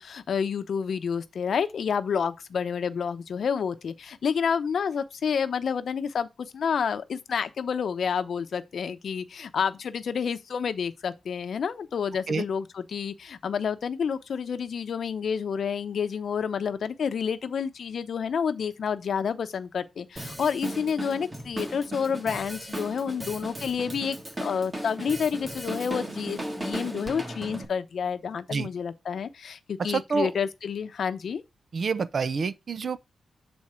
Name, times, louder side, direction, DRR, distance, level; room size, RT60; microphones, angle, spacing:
voice 1, 0.0-6.3 6.5-31.4, left 6 dB, 65° left, 0.7 m, -29 dB
Drum kit, 20.2-27.7, right 1 dB, 20° right, 1.5 m, -36 dB
voice 2, 29.9-30.3 31.7-33.0, right 5 dB, 50° right, 0.5 m, -27 dB
7.0 x 4.4 x 4.8 m
wide cardioid pair, 130°, 0 cm